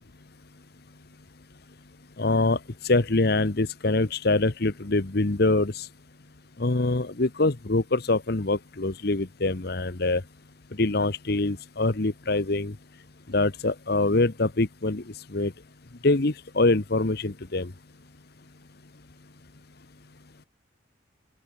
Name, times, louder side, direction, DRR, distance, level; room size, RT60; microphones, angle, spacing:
voice 1, 2.2-2.6 2.8-5.9 6.6-10.2 10.8-12.7 13.3-15.0 15.3-15.5 16.0-17.7, left 2 dB, 55° left, 1.1 m, -24 dB
open air
head